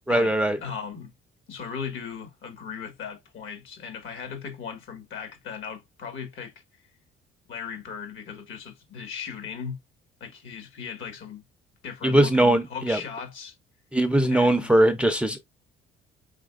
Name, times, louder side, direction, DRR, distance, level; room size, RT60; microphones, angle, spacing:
voice 1, 0.1-0.6 12.0-13.0 13.9-15.4, right 1 dB, 5° right, 0.4 m, -20 dB
voice 2, 0.6-1.1 1.5-6.5 7.5-9.8 10.2-11.4 11.8-13.5 14.3-14.7, left 6 dB, 70° left, 1.8 m, -37 dB
5.0 x 3.5 x 2.3 m
cardioid pair, 155°, 20 cm